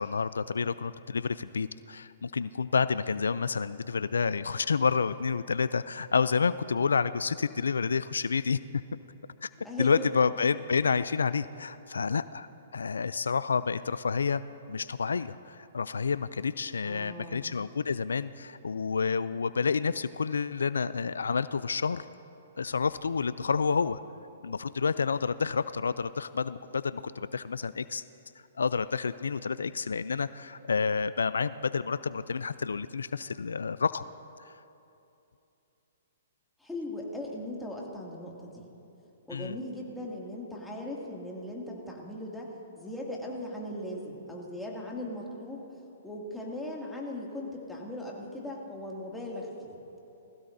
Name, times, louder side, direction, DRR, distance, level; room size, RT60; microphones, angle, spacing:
voice 1, 0.0-8.8 9.4-9.5 9.8-12.5 12.7-14.4 14.7-22.1 22.6-24.0 24.4-28.0 28.6-34.0 34.4-34.5 39.3-39.6, left 5 dB, 85° left, 16 dB, 0.3 m, -29 dB
voice 2, 9.6-10.1 16.8-17.5 36.6-38.7 39.3-45.6 46.0-49.8, left 1 dB, 5° left, -3 dB, 2.3 m, -39 dB
20.0 x 15.5 x 2.7 m, 2.8 s
hypercardioid pair, 135°, 0 cm